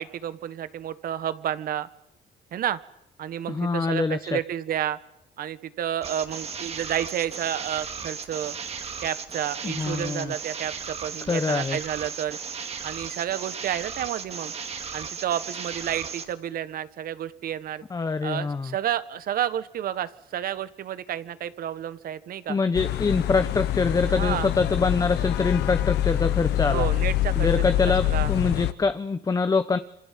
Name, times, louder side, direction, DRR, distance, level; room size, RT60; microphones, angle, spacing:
voice 1, 0.0-1.9 2.5-2.8 3.2-5.0 5.4-8.6 9.0-12.4 12.8-14.5 14.9-17.8 18.2-22.6 24.1-24.5 26.7-28.3, right 10 dB, 60° right, 14 dB, 1.5 m, -30 dB
voice 2, 3.5-4.4 9.6-10.3 11.3-11.8 17.9-18.7 22.5-26.9 27.4-29.8, left 4 dB, 20° left, 11 dB, 0.9 m, -25 dB
sound 1, 6.0-16.3, right 6 dB, 40° right, 2.6 m, -36 dB
sound 2, 22.8-28.7, left 13 dB, 85° left, 1.2 m, -25 dB
27.0 x 25.5 x 7.7 m, 0.83 s
cardioid pair, 110°, 17 cm